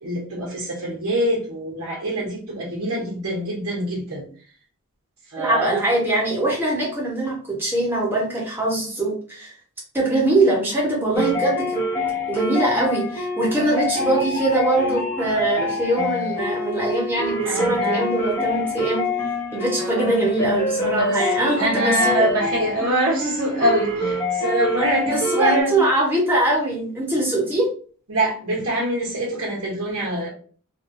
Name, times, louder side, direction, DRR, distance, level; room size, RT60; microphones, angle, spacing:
voice 1, 0.0-4.3 5.3-5.8 17.4-18.0 19.8-20.2 21.0-25.8 28.1-30.3, right 1 dB, 85° right, -4 dB, 1.1 m, -24 dB
voice 2, 5.4-9.5 9.9-11.8 12.3-19.0 19.5-22.3 25.0-27.7, right 2 dB, 10° right, -4 dB, 1.2 m, -22 dB
sound 1, 11.1-25.6, left 2 dB, 10° left, 1.0 m, -25 dB
3.3 x 2.7 x 2.7 m, 0.42 s
head